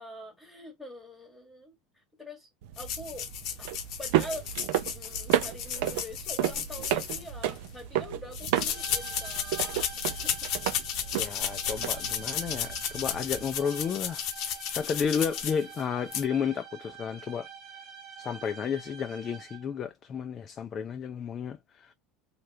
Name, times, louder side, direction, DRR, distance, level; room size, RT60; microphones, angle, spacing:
voice 1, 0.0-2.5 2.8-3.3 3.6-3.7 4.0-4.5 4.8-10.5 11.0-11.3, left 1 dB, 10° left, 1.2 m, -44 dB
sound 1, 2.6-13.5, right 12 dB, 75° right, 0.5 m, -33 dB
sound 2, 2.8-7.7 8.3-15.8 16.1-16.2, left 9 dB, 55° left, 0.8 m, -34 dB
sound 3, 8.7-19.8, right 7 dB, 45° right, 0.9 m, -47 dB
voice 2, 11.1-17.5 18.2-21.9, left 7 dB, 30° left, 0.4 m, -32 dB
3.4 x 2.3 x 2.7 m
supercardioid pair, 135°, 0 cm